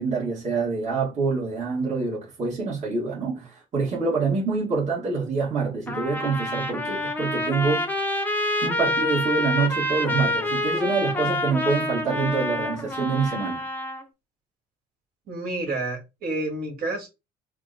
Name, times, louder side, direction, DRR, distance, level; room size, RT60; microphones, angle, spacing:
voice 1, 0.0-8.0 8.6-13.6, right 4 dB, 45° right, 1.7 m, -26 dB
Trumpet, 5.9-14.0, left 1 dB, 10° left, 0.7 m, -27 dB
voice 2, 15.3-17.1, right 2 dB, 60° right, 2.0 m, -29 dB
4.3 x 2.2 x 4.0 m
cardioid pair, 110°, 17 cm